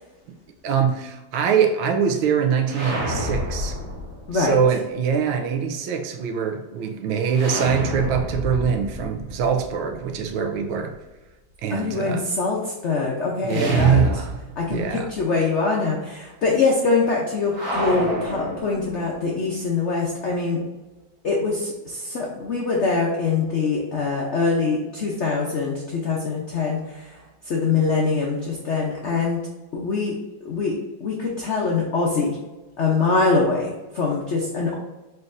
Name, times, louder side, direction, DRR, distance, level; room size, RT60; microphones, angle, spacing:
voice 1, 0.6-3.7 4.3-10.9 11.6-12.2 13.4-14.4 14.7-15.1, right 7 dB, 85° right, 4 dB, 1.5 m, -23 dB
sound 1, 2.6-4.6 7.3-10.3 13.5-14.9 15.1-15.2 17.5-19.3, equal, 45° right, 1.4 m, -29 dB
voice 2, 11.7-14.0 14.6-20.6 21.2-29.4 29.7-30.1 30.4-32.4 32.8-34.7, left 4 dB, 85° left, -2 dB, 0.6 m, -23 dB
4.5 x 4.0 x 2.6 m, 1.1 s
omnidirectional pair, 2.2 m